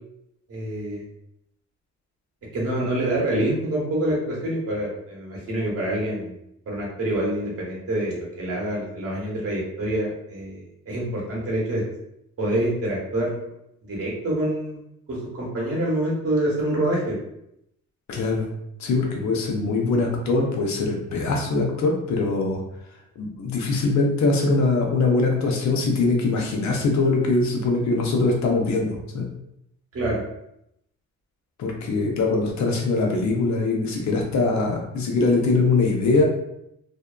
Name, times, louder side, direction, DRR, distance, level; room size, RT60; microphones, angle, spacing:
voice 1, 0.5-1.0 2.5-6.4 6.7-11.8 12.4-13.5 13.8-14.8 15.1-17.2 29.9-30.2, right 1 dB, 50° right, -4 dB, 1.1 m, -26 dB
voice 2, 18.1-18.5 18.8-22.6 23.2-29.3 31.6-36.2, left 3 dB, 65° left, 0 dB, 0.7 m, -22 dB
2.6 x 2.2 x 2.3 m, 0.80 s
cardioid pair, 90°, 30 cm